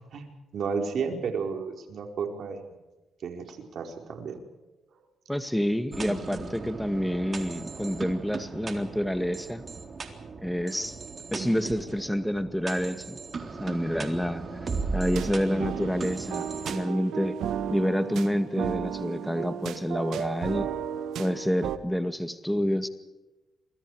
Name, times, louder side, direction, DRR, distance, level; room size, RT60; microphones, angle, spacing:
voice 1, 0.5-2.6 3.2-4.4, right 5 dB, 65° right, 4 dB, 4.7 m, -32 dB
voice 2, 5.3-9.6 10.4-11.0 11.3-13.2 13.6-14.4 14.9-17.4 17.7-20.7 21.2-22.9, equal, 5° left, 9 dB, 2.0 m, -28 dB
sound 1, 5.9-16.8, right 4 dB, 45° right, 3.7 m, -37 dB
sound 2, 15.1-21.8, right 9 dB, 85° right, 1.5 m, -34 dB
27.5 x 23.5 x 4.9 m, 1.1 s
cardioid pair, 75°, 0 cm